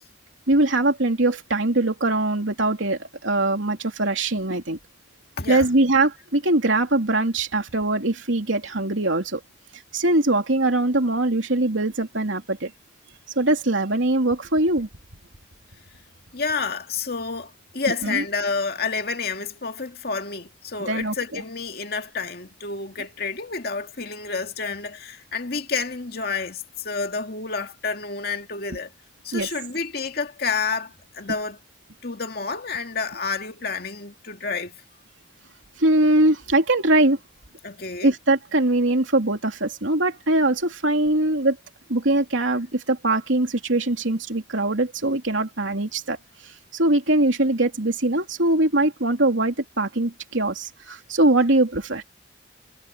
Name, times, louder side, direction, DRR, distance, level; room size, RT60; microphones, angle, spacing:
voice 1, 0.5-4.8 5.5-9.4 9.7-12.7 13.4-14.9 18.0-18.2 20.9-21.4 29.3-29.5 35.8-37.2 38.0-41.6 41.9-46.2 46.4-52.0, right 2 dB, 80° right, 3.0 m, -22 dB
voice 2, 5.4-5.7 16.3-28.9 29.2-31.6 32.0-34.8 37.6-38.1, left 4 dB, 55° left, 2.3 m, -29 dB
head